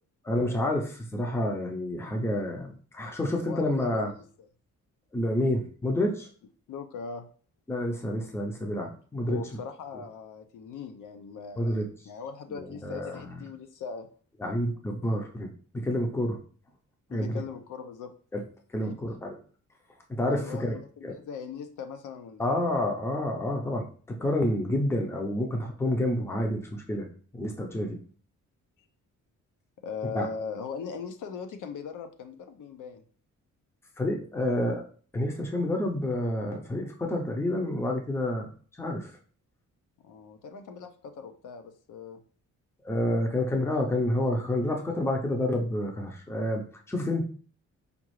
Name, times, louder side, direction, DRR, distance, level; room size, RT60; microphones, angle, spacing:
voice 1, 0.2-4.1 5.1-6.3 7.7-9.4 11.6-11.9 12.8-13.3 14.4-15.5 15.7-16.4 17.1-17.4 18.3-18.4 18.7-19.3 20.1-20.8 21.0-21.1 22.4-28.0 30.1-30.3 34.0-34.8 35.1-38.5 38.8-39.1 42.8-47.2, left 1 dB, 10° left, 2 dB, 0.5 m, -29 dB
voice 2, 3.5-4.5 6.7-7.3 9.2-14.1 17.1-18.1 18.7-19.0 20.3-22.6 29.8-33.0 40.0-42.2, left 6 dB, 75° left, 8 dB, 0.6 m, -40 dB
5.1 x 2.4 x 3.1 m, 0.43 s
wide cardioid pair, 155°, 31 cm